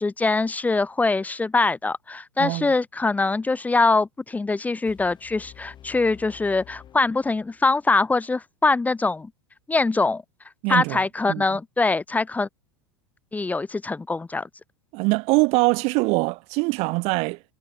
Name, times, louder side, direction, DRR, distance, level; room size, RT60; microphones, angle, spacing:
voice 1, 0.0-9.3 9.7-10.2 10.7-12.5 13.3-14.5, left 3 dB, 10° left, 0.8 m, -23 dB
voice 2, 2.4-2.7 10.6-11.0 11.3-11.4 14.9-17.4, right 27 dB, 45° right, 0.6 m, -23 dB
sound 1, 4.9-7.8, left 10 dB, 30° left, 2.1 m, -49 dB
figure-of-eight pair, 85°, 15 cm